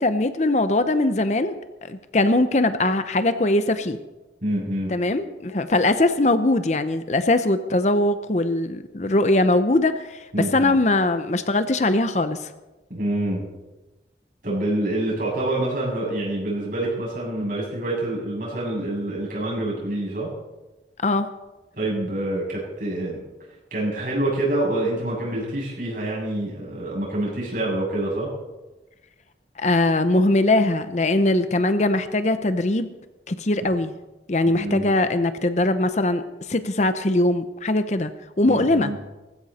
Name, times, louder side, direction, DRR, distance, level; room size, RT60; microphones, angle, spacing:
voice 1, 0.0-4.0 4.9-12.5 21.0-21.3 29.6-32.9 33.3-33.9 34.3-36.2 36.5-38.1 38.4-38.9, left 2 dB, 40° left, 11 dB, 0.7 m, -21 dB
voice 2, 4.4-4.9 10.3-10.7 12.9-13.4 14.4-20.3 21.7-23.2 23.7-28.3 34.5-34.8 38.5-39.0, right 1 dB, 50° right, -4 dB, 7.4 m, -26 dB
19.0 x 15.5 x 4.3 m, 1.1 s
head